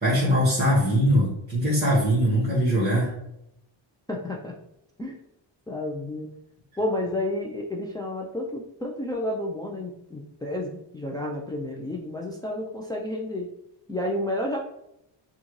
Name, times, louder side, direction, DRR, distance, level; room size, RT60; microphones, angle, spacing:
voice 1, 0.0-3.1, equal, 20° right, -6 dB, 1.7 m, -21 dB
voice 2, 4.1-4.5 5.0-5.2 5.7-6.3 6.8-13.5 13.9-14.6, left 1 dB, 10° left, -2 dB, 0.5 m, -31 dB
6.1 x 2.5 x 3.2 m, 0.80 s
cardioid pair, 105°, 49 cm